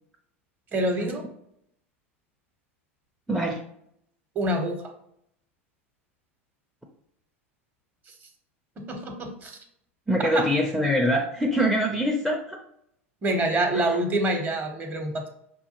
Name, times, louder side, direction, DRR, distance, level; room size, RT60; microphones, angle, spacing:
voice 1, 0.7-1.2 4.4-4.8 8.8-9.6 10.3-10.4 13.2-15.3, right 1 dB, 25° right, 5 dB, 0.8 m, -26 dB
voice 2, 3.3-3.6 10.1-12.6 13.7-14.0, equal, ahead, 1 dB, 0.4 m, -24 dB
5.2 x 2.2 x 2.9 m, 0.72 s
figure-of-eight pair, 85°, 7 cm